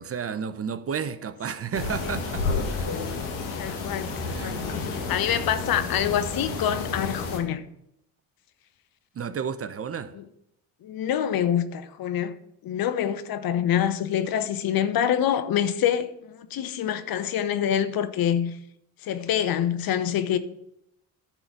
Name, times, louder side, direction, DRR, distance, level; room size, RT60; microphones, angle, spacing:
voice 1, 0.0-2.9 4.2-4.7 9.1-10.2, right 7 dB, 35° right, 0.7 m, -32 dB
sound 1, 1.7-7.4, left 4 dB, 85° left, 1.7 m, -31 dB
voice 2, 3.6-7.6 10.8-12.3 12.6-18.6 19.0-20.4, left 9 dB, 60° left, 0.9 m, -26 dB
11.0 x 4.0 x 6.9 m
hypercardioid pair, 60°, 41 cm